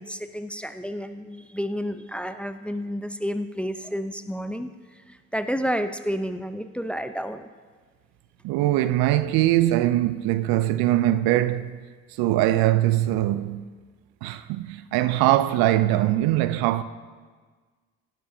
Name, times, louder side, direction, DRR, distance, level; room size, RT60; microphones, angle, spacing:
voice 1, 0.0-7.5, equal, 5° left, 0.7 m, -30 dB
voice 2, 8.4-11.8 12.2-13.6 14.2-16.8, right 14 dB, 65° right, 0.6 m, -22 dB
17.0 x 12.0 x 2.8 m
hypercardioid pair, 45°, 40 cm